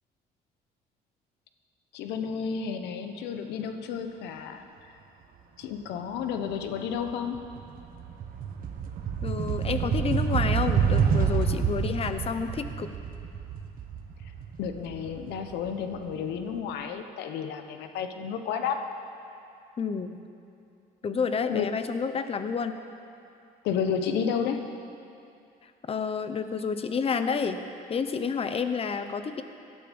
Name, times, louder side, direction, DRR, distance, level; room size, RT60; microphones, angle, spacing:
voice 1, 1.9-4.6 5.6-7.4 14.6-18.8 21.5-21.7 23.6-24.6, left 7 dB, 85° left, 7 dB, 1.2 m, -31 dB
sound 1, 6.5-6.7 7.1-15.9, right 7 dB, 55° right, 1.4 m, -28 dB
voice 2, 9.2-12.9 19.8-20.1 21.0-22.8 25.9-27.6 27.9-29.4, left 5 dB, 35° left, 9 dB, 1.0 m, -29 dB
17.5 x 12.0 x 5.4 m, 2.6 s
cardioid pair, 110°, 17 cm